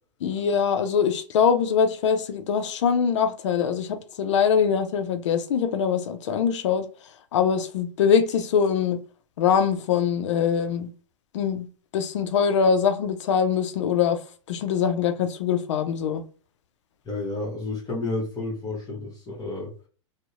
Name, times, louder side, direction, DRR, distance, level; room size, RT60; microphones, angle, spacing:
voice 1, 0.2-9.0 9.4-10.9 11.3-11.7 11.9-14.2 14.5-16.2, left 7 dB, 70° left, 0.4 m, -23 dB
voice 2, 17.0-19.7, left 2 dB, 25° left, 0.9 m, -31 dB
2.7 x 2.0 x 2.4 m
hypercardioid pair, 110°, 16 cm